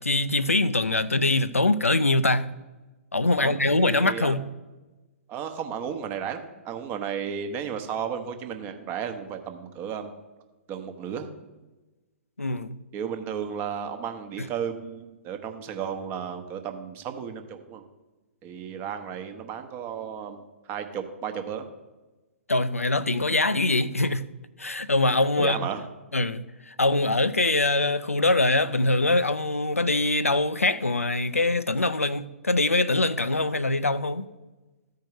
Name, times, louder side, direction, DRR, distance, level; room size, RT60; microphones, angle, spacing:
voice 1, 0.0-2.5 3.1-4.4 12.4-12.8 22.5-24.2 24.6-25.7 26.1-34.3, left 2 dB, 90° left, 0.4 m, -23 dB
voice 2, 3.4-4.4 5.3-10.1 10.7-11.3 12.9-17.8 18.4-21.7 25.4-25.9, right 7 dB, 25° right, 0.9 m, -34 dB
13.5 x 4.6 x 4.7 m
figure-of-eight pair, 120°, 7 cm